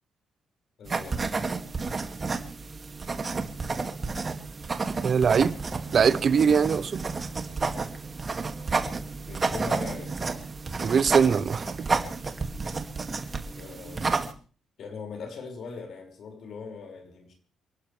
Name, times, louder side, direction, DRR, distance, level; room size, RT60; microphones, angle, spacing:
voice 1, 0.8-1.5 9.3-10.1 13.5-14.2 14.8-17.3, left 4 dB, 60° left, 5.8 m, -40 dB
sound 1, 0.9-14.3, right 4 dB, 35° right, 2.3 m, -31 dB
voice 2, 5.0-5.5 5.9-7.0 10.8-11.7, right 6 dB, 50° right, 1.0 m, -21 dB
29.5 x 12.0 x 3.4 m
cardioid pair, 90°, 0 cm